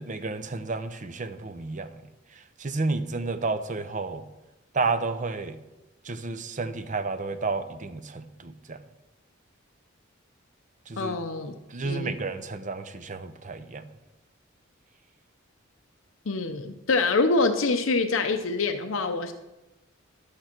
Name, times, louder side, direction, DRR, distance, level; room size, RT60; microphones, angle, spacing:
voice 1, 0.0-2.0 2.6-4.2 4.7-5.6 6.0-8.8 10.9-11.2 11.7-13.8, right 3 dB, 40° right, 10 dB, 0.7 m, -31 dB
voice 2, 11.0-11.5 11.8-12.1 16.3-19.3, left 3 dB, 80° left, 6 dB, 0.7 m, -25 dB
11.5 x 8.6 x 4.5 m, 0.99 s
head